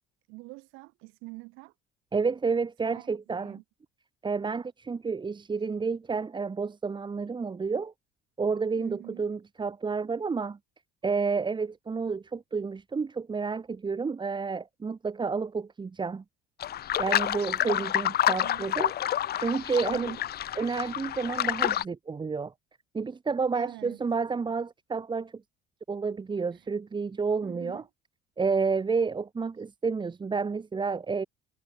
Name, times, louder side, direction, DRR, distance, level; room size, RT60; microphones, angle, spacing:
voice 1, 0.3-1.7 2.8-3.6 8.8-9.3 17.6-18.1 18.4-18.8 19.8-20.2 23.5-24.0 26.5-26.7 27.4-27.9, right 25 dB, 80° right, 1.6 m, -46 dB
voice 2, 2.1-3.6 4.2-7.9 8.4-10.6 11.0-16.2 17.0-18.9 19.4-20.2 20.5-22.5 22.9-25.3 25.9-27.8 28.4-31.2, right 5 dB, 20° right, 1.3 m, -30 dB
sound 1, 16.6-21.8, left 11 dB, 50° left, 1.2 m, -28 dB
supercardioid pair, 95°, 20 cm